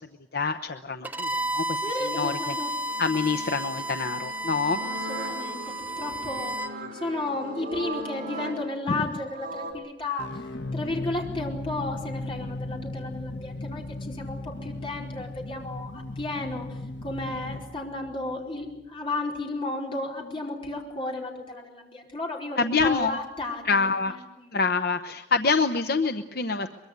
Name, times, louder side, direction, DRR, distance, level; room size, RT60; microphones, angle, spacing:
voice 1, 0.3-2.6 3.0-4.8 8.9-9.0 22.6-23.2 23.6-24.2 24.5-26.7, left 4 dB, 60° left, 8 dB, 0.9 m, -26 dB
Bowed string instrument, 1.0-6.7, right 1 dB, 10° right, 1.1 m, -32 dB
voice 2, 1.8-2.8 4.8-10.4 10.7-24.5, left 2 dB, 30° left, 0 dB, 4.6 m, -33 dB
sound 1, 2.9-9.7, right 1 dB, 55° right, 4.9 m, -39 dB
sound 2, 10.2-18.9, left 2 dB, 80° left, 1.5 m, -37 dB
23.5 x 22.5 x 8.1 m, 0.95 s
head